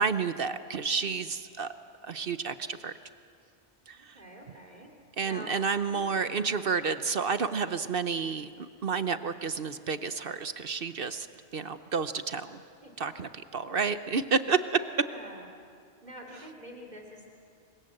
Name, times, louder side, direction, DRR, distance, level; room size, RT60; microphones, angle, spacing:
voice 1, 0.0-1.7 2.0-2.9 3.9-4.2 5.2-11.3 11.5-12.6 13.0-14.6 16.3-16.5, right 5 dB, 60° right, 11 dB, 1.0 m, -30 dB
voice 2, 4.1-4.9 5.2-5.6 5.9-6.4 15.1-15.4 16.0-17.3, equal, 40° right, 1 dB, 3.3 m, -46 dB
29.0 x 24.5 x 7.7 m, 2.4 s
omnidirectional pair, 1.1 m